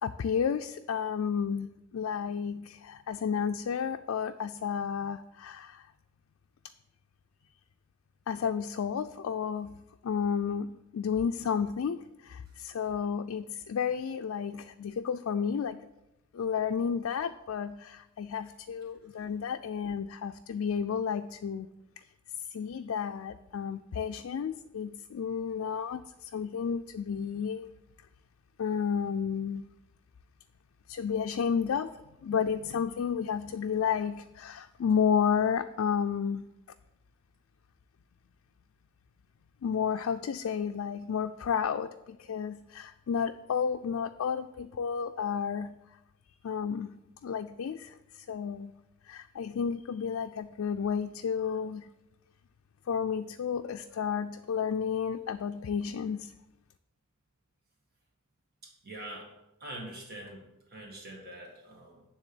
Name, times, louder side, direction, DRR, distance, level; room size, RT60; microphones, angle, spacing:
voice 1, 0.0-5.8 8.3-15.9 16.3-21.7 22.5-27.7 28.6-29.6 30.9-31.9 32.2-36.4 39.6-45.8 46.4-47.0 47.2-48.7 49.1-51.9 52.9-56.3, left 7 dB, 85° left, 7 dB, 0.4 m, -32 dB
voice 2, 58.8-59.3 59.6-62.0, right 1 dB, 50° right, -1 dB, 1.8 m, -44 dB
9.9 x 3.5 x 7.0 m, 0.91 s
head